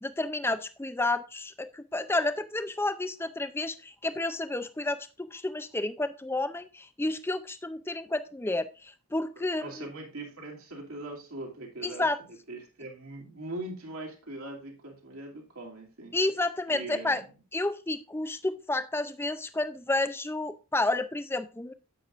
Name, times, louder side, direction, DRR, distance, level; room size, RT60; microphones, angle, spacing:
voice 1, 0.0-9.9 11.8-12.2 16.1-17.2 17.5-21.7, left 2 dB, 10° left, 11 dB, 0.4 m, -30 dB
voice 2, 9.4-12.0 12.5-16.2 16.7-17.3, right 2 dB, 75° right, 0 dB, 2.7 m, -41 dB
10.5 x 8.3 x 2.5 m, 0.33 s
head